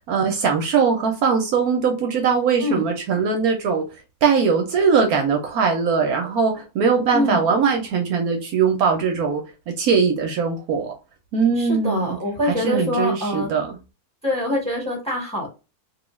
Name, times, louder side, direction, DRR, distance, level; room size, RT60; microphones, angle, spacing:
voice 1, 0.1-3.8 4.2-10.9 11.3-12.2 12.5-13.7, right 5 dB, 70° right, 1.1 m, -21 dB
voice 2, 7.1-7.5 11.5-13.5 14.2-15.5, left 1 dB, 5° left, 1.1 m, -24 dB
3.1 x 2.3 x 3.0 m
omnidirectional pair, 1.7 m